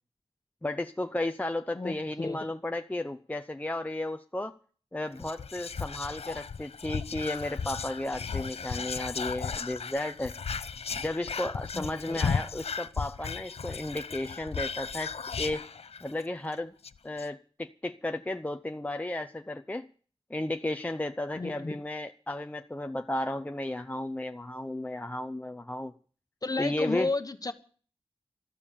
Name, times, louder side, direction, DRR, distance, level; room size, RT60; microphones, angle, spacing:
voice 1, 0.6-4.5 4.9-10.3 11.0-15.1 15.4-15.7 16.0-16.7 17.0-19.9 20.3-25.9 26.6-27.1, left 1 dB, 15° left, 7 dB, 0.7 m, -34 dB
voice 2, 1.7-2.4 11.7-12.2 21.4-21.8 26.4-27.5, left 3 dB, 40° left, 9 dB, 1.3 m, -33 dB
Whispering, 5.2-16.2 16.5-16.6 16.8-17.3, left 5 dB, 85° left, 0.6 m, -35 dB
13.0 x 13.0 x 6.9 m, 0.42 s
wide cardioid pair, 95°, 10 cm